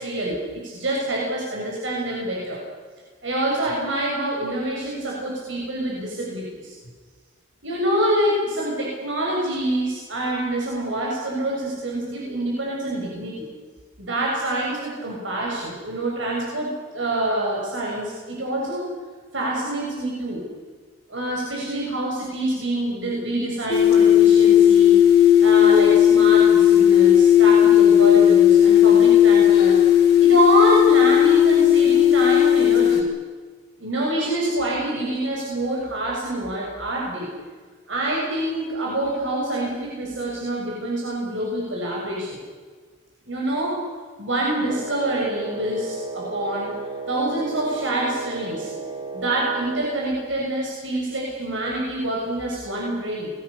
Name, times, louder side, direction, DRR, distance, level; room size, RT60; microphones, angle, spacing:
voice 1, 0.0-2.6 3.2-6.7 7.6-13.5 14.0-18.9 19.3-20.5 21.1-29.8 30.2-33.1 33.8-37.3 37.9-42.4 43.3-43.8 44.2-46.7 47.1-48.7 49.1-53.3, right 1 dB, 75° right, -3 dB, 6.9 m, -26 dB
sound 1, 23.7-33.0, left 10 dB, 55° left, 5.2 m, -14 dB
Wind instrument woodwind instrument, 44.6-50.0, right 4 dB, 30° right, 3.3 m, -34 dB
28.5 x 22.0 x 7.0 m, 1.5 s
head